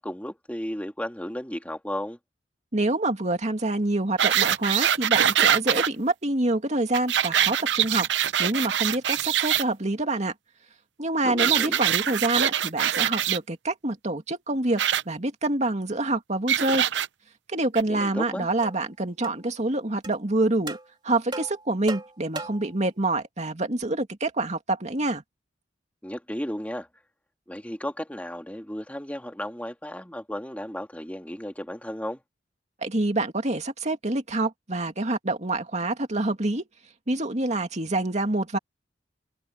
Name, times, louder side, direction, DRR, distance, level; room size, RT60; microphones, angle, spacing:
voice 1, 0.0-2.2 11.2-11.8 17.9-18.5 26.0-26.9 27.5-32.2, equal, 10° left, 1.9 m, -34 dB
voice 2, 2.7-8.1 8.4-10.3 11.0-16.9 17.5-20.8 21.0-25.2 32.8-36.6 37.1-38.6, right 2 dB, 40° right, 2.3 m, -26 dB
sound 1, 4.2-5.9 6.9-9.6 11.4-13.4 14.8-15.0 16.5-17.1 17.8-17.9, right 10 dB, 80° right, 0.7 m, -23 dB
sound 2, 18.0-18.1 18.6-18.8 19.2-19.4 20.0-20.2 20.7-20.9 21.3-22.7, right 2 dB, 25° right, 2.9 m, -37 dB
head